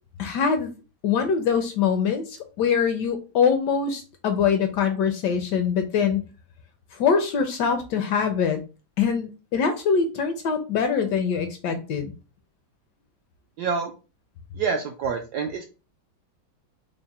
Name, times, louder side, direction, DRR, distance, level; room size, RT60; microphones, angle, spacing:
voice 1, 0.2-0.7 1.0-6.2 6.9-8.6 9.0-12.1, left 6 dB, 75° left, 7 dB, 1.0 m, -23 dB
voice 2, 13.6-13.9 14.5-15.6, right 5 dB, 75° right, 3 dB, 0.9 m, -27 dB
3.7 x 2.1 x 4.0 m, 0.32 s
omnidirectional pair, 2.2 m